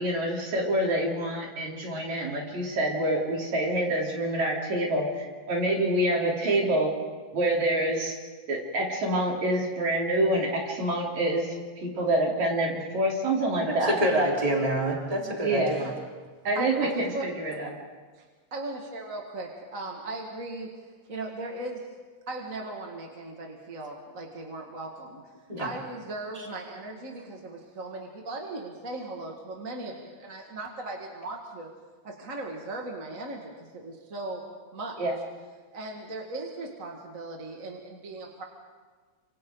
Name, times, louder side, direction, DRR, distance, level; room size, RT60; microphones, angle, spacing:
voice 1, 0.0-6.9 7.3-8.1 8.5-11.6 11.8-13.9 15.4-15.8 16.4-17.7 35.0-35.1, right 1 dB, 70° right, -2 dB, 5.0 m, -26 dB
voice 2, 13.7-15.9 25.5-25.7, right 1 dB, 10° right, -3 dB, 4.2 m, -26 dB
voice 3, 16.6-17.3 18.2-18.3 18.5-20.8 21.1-21.9 22.3-25.2 25.6-31.7 32.0-34.4 34.7-35.0 35.7-38.4, right 2 dB, 30° right, 0 dB, 2.0 m, -38 dB
29.5 x 26.5 x 3.9 m, 1.5 s
omnidirectional pair, 3.3 m